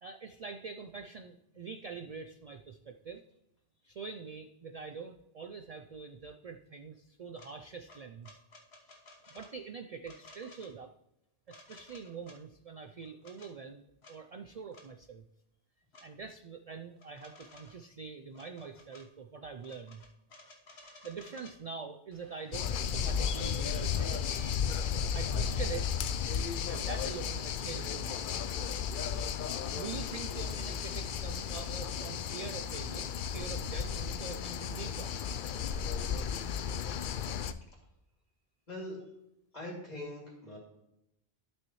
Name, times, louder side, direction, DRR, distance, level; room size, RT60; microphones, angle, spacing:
voice 1, 0.0-3.2 3.8-8.4 9.3-10.9 11.5-15.3 16.0-20.0 21.0-24.2 25.1-25.9 26.7-28.5 29.7-35.2, right 5 dB, 50° right, 8 dB, 0.5 m, -44 dB
sound 1, 7.4-7.5 7.9-9.5 10.0-10.7 11.5-12.4 13.0-13.5 14.0-14.2 14.7-14.9 15.9-16.1 17.0-17.8 18.3-19.1 19.6-21.6 22.6-22.7 23.1-23.6 24.3-24.6 26.1-26.3, left 2 dB, 75° left, 1.6 m, -55 dB
sound 2, 22.1-27.4, right 2 dB, 30° right, 1.2 m, -57 dB
sound 3, 22.5-37.5, left 7 dB, 60° left, 0.6 m, -34 dB
voice 2, 38.7-39.0 39.5-40.6, left 1 dB, 40° left, -3 dB, 2.8 m, -42 dB
12.0 x 6.4 x 3.1 m, 0.84 s
omnidirectional pair, 1.1 m